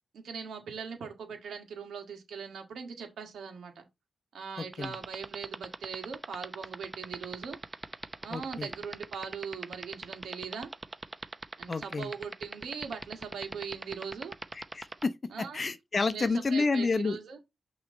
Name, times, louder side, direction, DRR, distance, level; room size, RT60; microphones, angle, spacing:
voice 1, 0.1-3.9 4.3-7.6 8.2-10.7 11.6-14.3 15.3-15.6 16.0-17.4, right 6 dB, 85° right, 1.6 m, -40 dB
voice 2, 4.6-5.0 8.3-8.7 11.7-12.1 14.5-15.1 15.5-17.2, left 4 dB, 45° left, 0.6 m, -30 dB
sound 1, 4.7-15.0, right 2 dB, 30° right, 0.7 m, -38 dB
6.0 x 3.1 x 5.1 m
cardioid pair, 60°, 0 cm